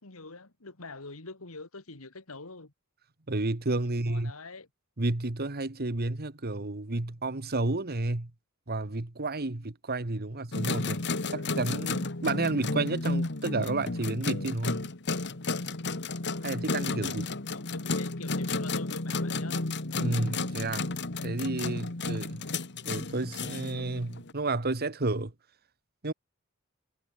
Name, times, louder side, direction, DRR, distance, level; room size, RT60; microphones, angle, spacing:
voice 1, 0.0-2.7 3.8-4.7 10.3-10.5 17.5-19.6, left 3 dB, 75° left, 2.4 m, -45 dB
voice 2, 3.3-4.3 5.0-8.3 8.7-11.0 11.3-14.9 16.4-17.3 19.9-20.9 21.2-22.4 22.8-25.3 26.0-26.1, right 2 dB, 45° right, 1.5 m, -31 dB
sound 1, 10.5-24.3, left 3 dB, 55° left, 1.9 m, -32 dB
head